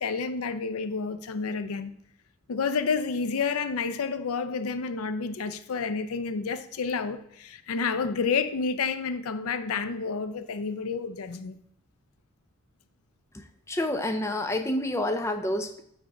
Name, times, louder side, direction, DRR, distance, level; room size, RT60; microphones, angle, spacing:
voice 1, 0.0-1.9 2.5-11.5, left 5 dB, 80° left, 11 dB, 0.5 m, -30 dB
voice 2, 13.3-15.8, left 1 dB, 15° left, 6 dB, 0.4 m, -29 dB
8.9 x 3.5 x 3.8 m, 0.70 s
head